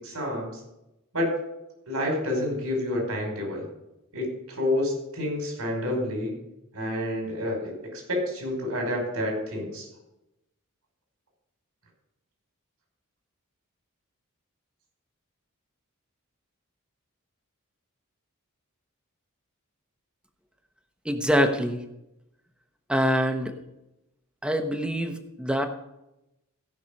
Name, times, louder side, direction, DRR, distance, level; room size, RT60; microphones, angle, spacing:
voice 1, 0.0-0.6 1.1-1.3 1.9-3.7 4.1-6.4 6.7-9.9, left 1 dB, 90° right, 1 dB, 5.3 m, -29 dB
voice 2, 21.0-21.8 22.9-23.5 24.4-25.7, equal, 5° right, 6 dB, 1.0 m, -25 dB
16.5 x 6.0 x 5.3 m, 0.91 s
head